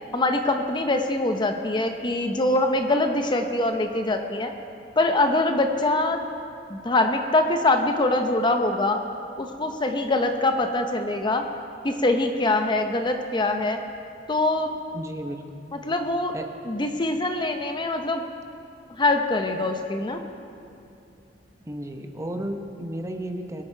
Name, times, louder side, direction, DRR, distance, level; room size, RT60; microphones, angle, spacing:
voice 1, 0.1-4.5 5.0-6.2 6.7-9.0 9.4-11.5 11.8-13.8 14.3-14.7 15.8-16.3 16.7-18.2 18.9-20.2, left 2 dB, 25° left, 6 dB, 0.7 m, -23 dB
voice 2, 14.9-15.5 16.3-16.5 21.6-23.6, right 1 dB, 15° right, 5 dB, 0.8 m, -33 dB
22.0 x 8.5 x 4.5 m, 2.6 s
head